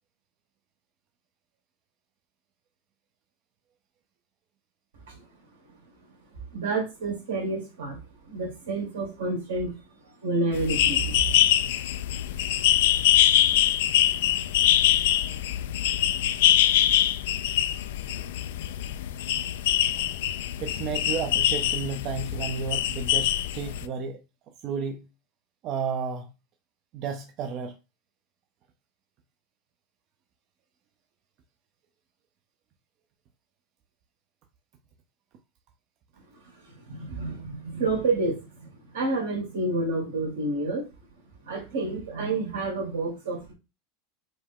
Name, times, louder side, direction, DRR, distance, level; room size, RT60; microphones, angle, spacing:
voice 1, 6.3-11.3 36.3-40.9 41.4-43.5, right 3 dB, 85° right, 2.1 m, -30 dB
sound 1, 10.5-23.9, left 12 dB, 80° left, 0.3 m, -24 dB
voice 2, 20.6-24.2 24.6-25.1 25.6-26.3 26.9-27.7, right 6 dB, 50° right, 0.5 m, -32 dB
5.0 x 2.2 x 3.7 m
supercardioid pair, 110°, 0 cm